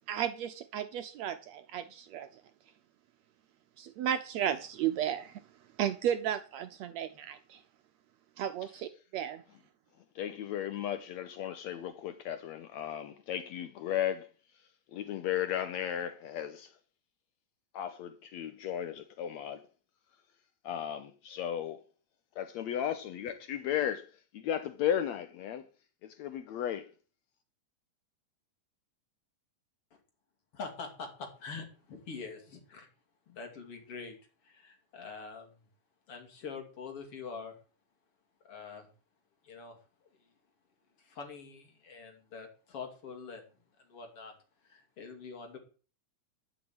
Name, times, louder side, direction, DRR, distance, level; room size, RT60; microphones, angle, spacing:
voice 1, 0.1-2.3 3.8-5.4 5.8-7.6 8.4-9.4, right 10 dB, 75° right, 1.7 m, -34 dB
voice 2, 10.2-14.3 14.9-16.7 17.7-19.6 20.6-21.8 22.4-24.1 24.3-25.6 26.0-26.9, left 10 dB, 70° left, 1.9 m, -35 dB
voice 3, 30.5-32.9 33.3-34.2 34.4-35.5 36.1-37.6 38.5-38.9 39.4-39.8 41.0-43.4 43.9-44.3 44.6-45.6, left 5 dB, 45° left, 3.5 m, -44 dB
11.5 x 6.3 x 8.7 m
omnidirectional pair, 3.6 m